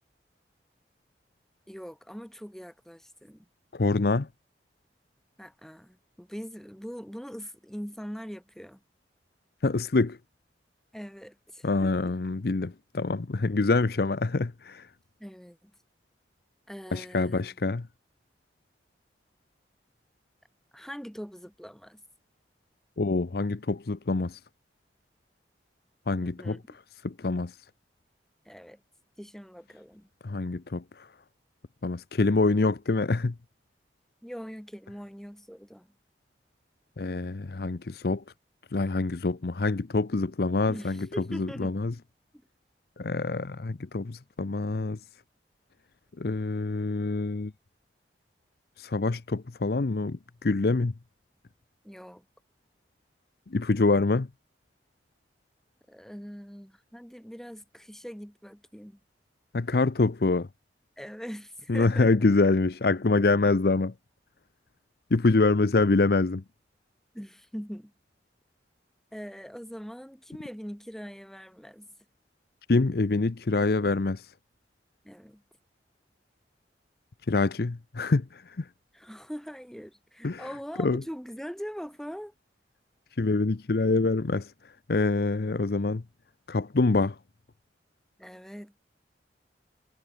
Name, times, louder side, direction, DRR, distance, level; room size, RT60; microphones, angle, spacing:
voice 1, 1.7-3.5 5.4-8.8 10.9-12.1 15.2-15.7 16.7-17.4 20.7-22.0 26.2-26.6 28.5-28.8 29.2-30.1 34.2-35.9 40.7-41.8 51.8-52.3 55.9-59.0 61.0-62.2 67.1-67.9 69.1-71.9 75.0-75.4 78.9-82.3 88.2-88.8, equal, 5° left, 3.3 m, -42 dB
voice 2, 3.7-4.3 9.6-10.2 11.6-14.8 16.9-17.8 23.0-24.4 26.1-26.6 27.0-27.6 30.2-30.8 31.8-33.3 37.0-38.2 38.7-41.1 41.3-41.9 43.0-45.0 46.2-47.5 48.8-50.9 53.5-54.3 59.5-60.5 61.7-63.9 65.1-66.4 72.7-74.3 77.3-78.6 80.2-80.4 80.8-81.0 83.2-84.5 84.9-86.0 86.5-87.1, left 3 dB, 60° left, 0.7 m, -25 dB
head